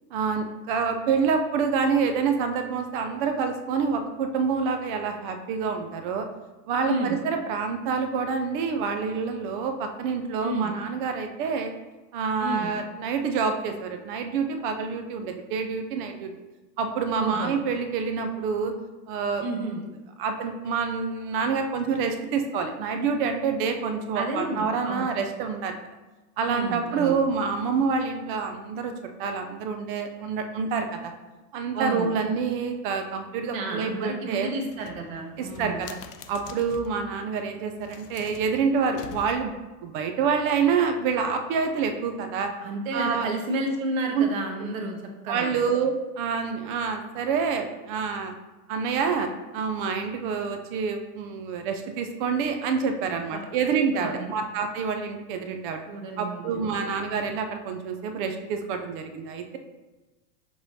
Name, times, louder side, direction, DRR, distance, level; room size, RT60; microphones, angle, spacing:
voice 1, 0.1-6.3 6.7-11.7 12.1-16.3 16.8-18.7 19.1-19.4 20.2-25.8 26.4-28.9 29.2-31.1 31.5-34.5 35.4-36.0 36.3-39.5 39.8-42.5 42.9-43.3 44.1-44.2 45.3-48.3 48.7-55.8 56.2-59.6, right 5 dB, 35° right, 6 dB, 0.4 m, -27 dB
voice 2, 6.9-7.2 10.4-10.7 12.4-12.7 17.2-17.5 19.4-19.8 24.1-25.0 26.5-27.2 31.7-32.1 33.5-35.8 42.6-44.9 45.2-45.6 53.3-53.4 53.9-54.3 55.9-56.8, right 2 dB, 55° right, 2 dB, 1.1 m, -31 dB
sound 1, 34.7-37.0 37.7-39.7, left 6 dB, 75° left, 0.7 m, -44 dB
5.9 x 3.2 x 2.6 m, 1.1 s
hypercardioid pair, 120°, 47 cm